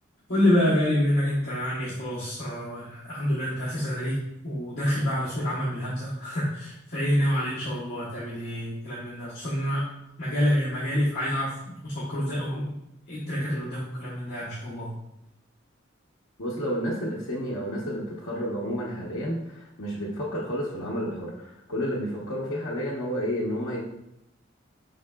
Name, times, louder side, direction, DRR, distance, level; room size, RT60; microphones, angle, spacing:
voice 1, 0.3-4.2 4.4-9.8 10.2-11.5 11.8-12.7 13.1-14.9, equal, 55° left, -10 dB, 1.1 m, -27 dB
voice 2, 16.4-23.8, equal, 90° left, -6 dB, 0.9 m, -31 dB
5.2 x 3.7 x 2.3 m, 0.83 s
head